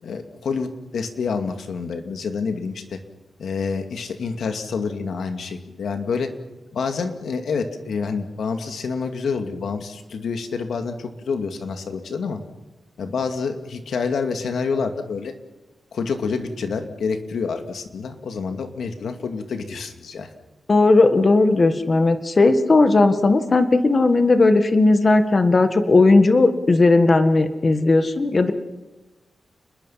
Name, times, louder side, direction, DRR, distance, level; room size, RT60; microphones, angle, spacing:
voice 1, 0.0-3.0 3.4-6.3 6.7-12.4 13.0-15.3 15.9-20.3, left 5 dB, 75° left, 6 dB, 2.4 m, -27 dB
voice 2, 20.7-28.5, left 3 dB, 35° left, 8 dB, 1.7 m, -16 dB
30.0 x 21.0 x 5.9 m, 1.1 s
wide cardioid pair, 160°, 0 cm